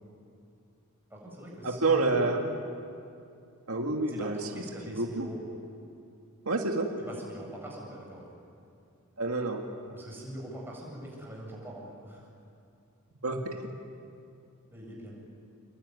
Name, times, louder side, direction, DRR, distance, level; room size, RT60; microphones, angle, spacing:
voice 1, 1.1-2.4 4.1-5.4 7.1-8.2 9.9-12.3 14.7-15.1, right 1 dB, 10° right, -3 dB, 7.7 m, -43 dB
voice 2, 1.6-2.4 3.7-4.5 5.0-5.3 6.5-6.9 9.2-9.6 13.2-13.5, right 3 dB, 70° right, 2 dB, 2.1 m, -28 dB
27.5 x 22.5 x 9.7 m, 2.6 s
head